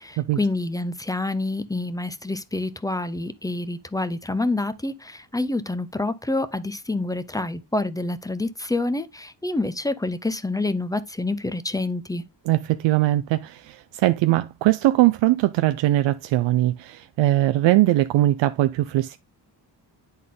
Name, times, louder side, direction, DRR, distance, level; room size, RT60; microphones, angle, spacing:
voice 1, 0.0-12.2, left 2 dB, 10° left, 0.5 m, -27 dB
voice 2, 12.5-19.2, right 15 dB, 85° right, 0.5 m, -21 dB
9.3 x 4.0 x 3.6 m
cardioid pair, 115°, 43 cm